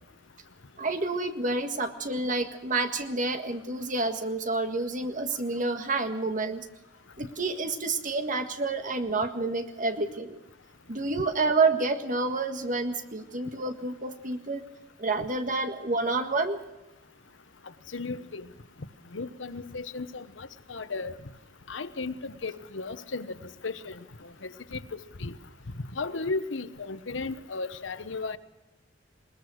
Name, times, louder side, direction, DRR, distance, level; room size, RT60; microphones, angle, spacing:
voice 1, 0.8-6.7 7.2-10.4 10.9-14.7 15.0-16.6, right 3 dB, 45° right, 7 dB, 1.7 m, -29 dB
voice 2, 17.9-18.5 19.1-21.1 21.7-23.4 23.6-24.0 24.4-25.3 26.0-28.4, left 3 dB, 85° left, 12 dB, 1.1 m, -35 dB
21.0 x 20.5 x 6.4 m, 0.99 s
head